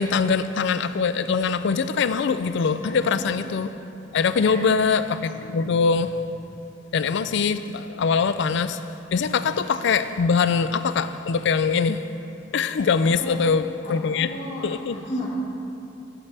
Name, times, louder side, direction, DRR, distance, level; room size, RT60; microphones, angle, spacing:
voice 1, 0.0-3.7 4.1-6.2 6.9-8.8 9.1-12.1 12.5-14.3 14.6-15.0, left 5 dB, 60° left, 12 dB, 0.4 m, -23 dB
voice 2, 4.1-4.7 5.3-5.5 13.0-13.4 13.8-15.4, equal, 30° left, -8 dB, 1.7 m, -35 dB
13.5 x 8.6 x 3.4 m, 2.7 s
head